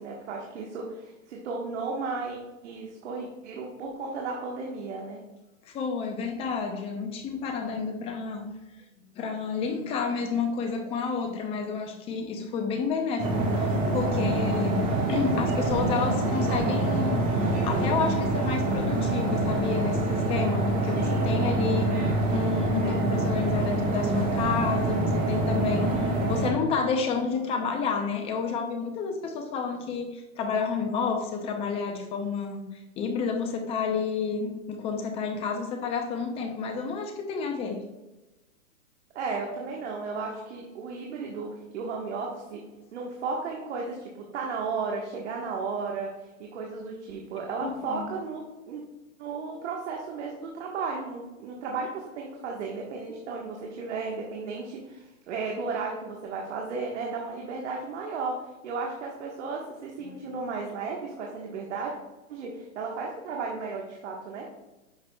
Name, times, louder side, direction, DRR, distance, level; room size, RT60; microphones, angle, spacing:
voice 1, 0.0-5.2 20.9-21.3 39.1-42.6 42.9-48.8 49.2-61.9 62.3-64.5, right 4 dB, 55° right, -1 dB, 1.5 m, -34 dB
voice 2, 5.6-8.5 9.1-20.0 20.3-37.9 47.6-48.1, left 5 dB, 15° left, 5 dB, 0.6 m, -30 dB
sound 1, 13.2-26.5, right 2 dB, 20° right, 1.6 m, -26 dB
10.5 x 5.9 x 2.3 m, 1.0 s
hypercardioid pair, 140°, 42 cm